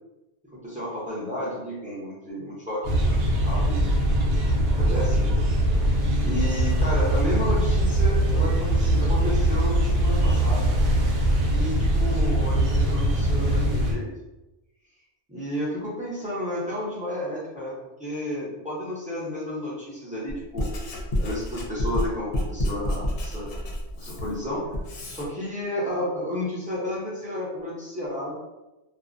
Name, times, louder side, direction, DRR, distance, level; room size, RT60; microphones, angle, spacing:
voice 1, 0.5-3.9 4.2-5.3 6.2-10.8 11.5-14.1 15.3-17.7 18.0-20.7 21.2-23.5 23.9-24.7 25.1-28.3, left 1 dB, 10° right, -8 dB, 0.6 m, -32 dB
sound 1, 2.8-13.9, right 1 dB, 65° right, 0.7 m, -22 dB
Writing, 20.3-25.3, left 1 dB, 60° left, 0.7 m, -29 dB
2.3 x 2.1 x 2.5 m, 1.0 s
omnidirectional pair, 1.2 m